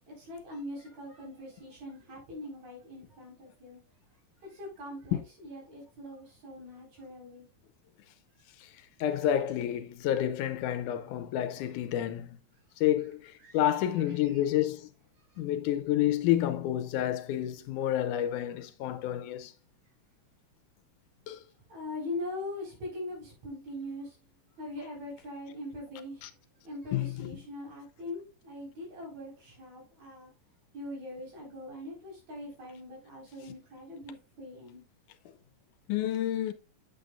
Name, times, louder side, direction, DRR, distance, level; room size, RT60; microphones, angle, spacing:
voice 1, 0.0-3.8 4.4-7.5 13.4-14.4 15.3-15.4 21.7-24.3 24.6-26.3 26.6-30.3 30.7-34.8, left 1 dB, 60° right, 5.3 m, -42 dB
voice 2, 9.0-12.4 12.8-14.9 15.4-19.5 21.3-21.4 26.2-26.3 26.9-27.4 35.9-36.5, left 12 dB, 85° left, 2.1 m, -29 dB
8.2 x 8.1 x 2.3 m
omnidirectional pair, 3.7 m